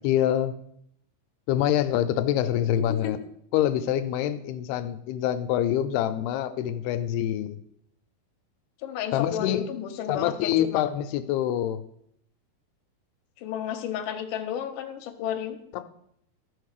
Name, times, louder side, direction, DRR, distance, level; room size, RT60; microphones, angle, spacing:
voice 1, 0.0-0.5 1.5-3.2 3.5-7.6 9.1-9.7 10.1-11.8 15.7-15.8, left 11 dB, 85° left, 11 dB, 2.7 m, -25 dB
voice 2, 2.8-3.1 8.8-10.8 13.4-15.6, left 9 dB, 70° left, 5 dB, 2.3 m, -32 dB
13.0 x 5.3 x 6.6 m, 0.71 s
omnidirectional pair, 4.5 m